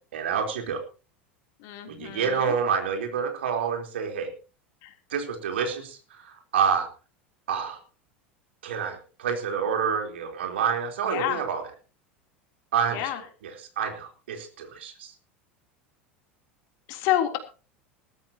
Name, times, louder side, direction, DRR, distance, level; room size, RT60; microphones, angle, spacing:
voice 1, 0.1-0.8 1.9-4.3 5.1-6.0 6.2-6.9 7.5-7.8 8.6-11.6 12.7-13.1 13.4-15.1, right 7 dB, 70° right, 4 dB, 4.0 m, -28 dB
voice 2, 1.6-2.5 4.8-4.9 11.0-11.4 12.9-13.2 16.9-17.4, left 12 dB, 55° left, 5 dB, 3.4 m, -28 dB
20.5 x 13.0 x 3.0 m, 0.35 s
figure-of-eight pair, 80°, 6 cm